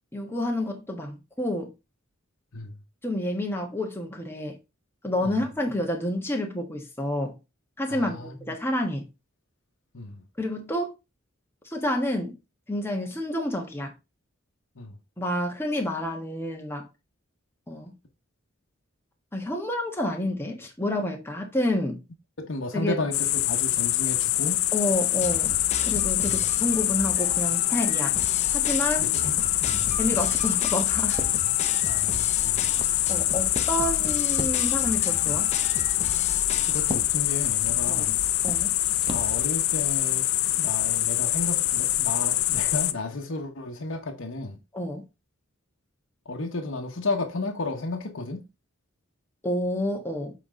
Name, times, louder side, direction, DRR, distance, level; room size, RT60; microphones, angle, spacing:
voice 1, 0.1-1.7 3.0-4.6 5.0-7.4 7.8-9.1 10.4-10.9 11.6-12.4 12.7-13.9 15.2-16.9 17.7-17.9 19.3-22.0 22.7-22.9 24.7-25.5 25.8-28.1 28.5-29.1 30.0-31.2 33.1-35.5 37.9-38.1 38.4-38.7 44.7-45.0 49.4-50.3, left 1 dB, 10° left, 1.4 m, -29 dB
voice 2, 7.9-8.5 9.9-10.2 14.8-15.0 22.4-24.6 26.2-26.4 29.0-29.9 31.4-31.5 31.8-32.7 36.7-38.2 39.1-40.3 40.6-44.6 46.2-48.4, left 2 dB, 65° left, 1.0 m, -33 dB
sound 1, 23.1-42.9, left 14 dB, 85° left, 0.5 m, -25 dB
sound 2, 25.2-37.0, left 4 dB, 35° left, 0.9 m, -36 dB
Walk footsteps, 30.1-39.5, right 1 dB, 25° right, 0.7 m, -41 dB
7.1 x 4.2 x 3.7 m
head